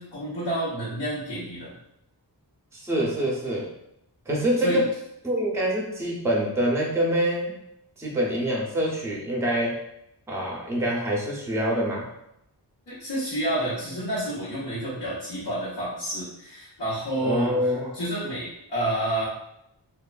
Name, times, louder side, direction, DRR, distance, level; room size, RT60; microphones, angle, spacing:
voice 1, 0.0-1.7 4.6-4.8 12.9-19.3, right 1 dB, 80° left, -11 dB, 1.0 m, -29 dB
voice 2, 2.7-3.7 4.3-4.9 5.2-7.5 8.0-9.8 10.3-12.1 17.2-17.9, equal, 5° right, -2 dB, 0.6 m, -25 dB
3.1 x 2.3 x 2.3 m, 0.80 s
wide cardioid pair, 70°, 42 cm